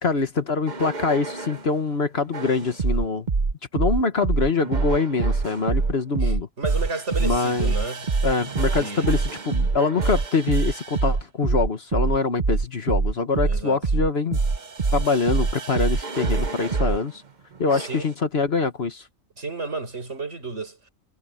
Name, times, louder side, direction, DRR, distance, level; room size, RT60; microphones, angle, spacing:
voice 1, 0.0-3.3 3.7-6.5 7.2-7.7 8.2-14.4 14.9-17.2 17.6-19.0, left 4 dB, 50° left, 1.5 m, -24 dB
sound 1, 0.7-1.7 2.3-17.0 17.7-18.1, right 4 dB, 35° right, 1.1 m, -25 dB
voice 2, 6.2-8.1 8.8-9.1 13.4-13.8 17.7-18.1 19.4-20.9, right 3 dB, 60° right, 5.4 m, -32 dB
omnidirectional pair, 1.4 m